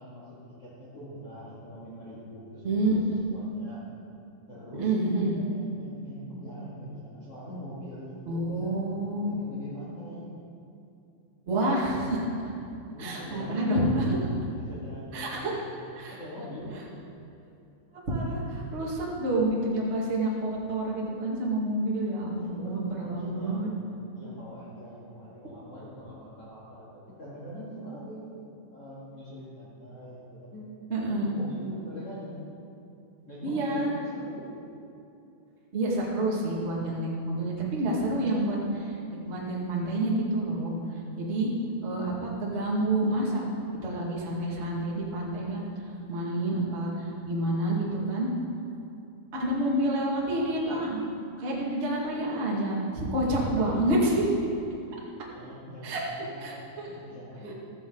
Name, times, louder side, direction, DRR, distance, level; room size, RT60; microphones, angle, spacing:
voice 1, 0.0-3.8 4.5-4.9 5.2-10.3 12.9-14.1 14.5-16.9 22.4-23.8 24.1-28.4 28.7-32.4 33.3-34.5 53.2-53.7 55.3-57.5, equal, 40° left, -9 dB, 2.6 m, -43 dB
voice 2, 2.6-3.2 4.8-5.3 8.3-9.3 11.5-12.2 13.0-14.0 15.1-15.6 15.9-16.1 18.1-23.7 30.9-31.3 33.4-33.9 35.7-38.9 39.2-40.7 41.2-41.5 41.8-43.4 43.8-45.6 46.1-48.3 49.3-51.0 51.4-54.3 55.8-56.0 56.4-56.9, right 1 dB, 30° right, -4 dB, 1.1 m, -28 dB
14.5 x 14.0 x 4.0 m, 2.7 s
omnidirectional pair, 5.1 m